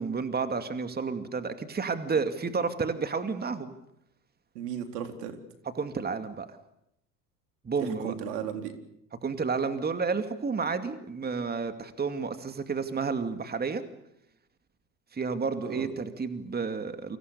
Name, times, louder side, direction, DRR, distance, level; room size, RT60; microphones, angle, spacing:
voice 1, 0.0-3.7 5.7-6.6 7.6-8.1 9.2-13.8 15.1-17.2, right 5 dB, 20° right, 9 dB, 2.4 m, -31 dB
voice 2, 4.5-5.4 7.8-8.7 15.6-15.9, right 8 dB, 75° right, 6 dB, 4.2 m, -35 dB
29.5 x 25.0 x 7.0 m, 0.78 s
hypercardioid pair, 80°, 49 cm